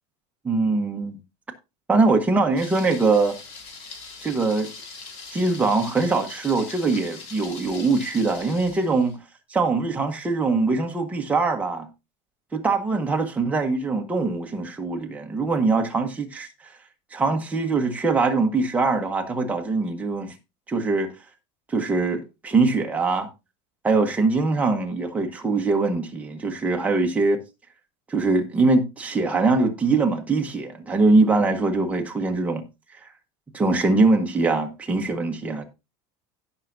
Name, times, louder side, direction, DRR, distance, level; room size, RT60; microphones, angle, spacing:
voice 1, 0.4-1.2 1.9-3.4 4.2-4.7 5.3-9.2 9.5-11.9 12.5-16.5 17.1-20.3 20.7-21.1 21.7-23.3 23.8-27.4 28.1-32.6 33.5-35.6, right 3 dB, 10° right, 1.2 m, -22 dB
Thunder, 2.6-9.2, left 4 dB, 50° left, 2.6 m, -41 dB
16.5 x 5.8 x 2.6 m
cardioid pair, 155°, 14 cm